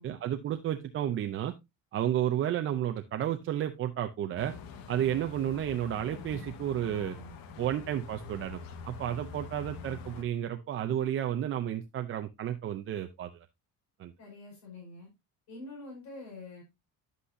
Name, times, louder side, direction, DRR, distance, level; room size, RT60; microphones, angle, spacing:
voice 1, 0.0-1.5 1.9-4.5 4.9-7.2 7.6-8.6 8.9-13.5 14.0-14.1, right 11 dB, 35° right, 7 dB, 0.6 m, -32 dB
sound 1, 4.4-10.2, left 5 dB, 75° left, 1.6 m, -45 dB
voice 2, 6.8-7.4 14.2-15.1 15.5-16.6, left 3 dB, 50° left, -1 dB, 5.1 m, -46 dB
10.0 x 8.2 x 2.7 m, 0.21 s
cardioid pair, 175°, 35 cm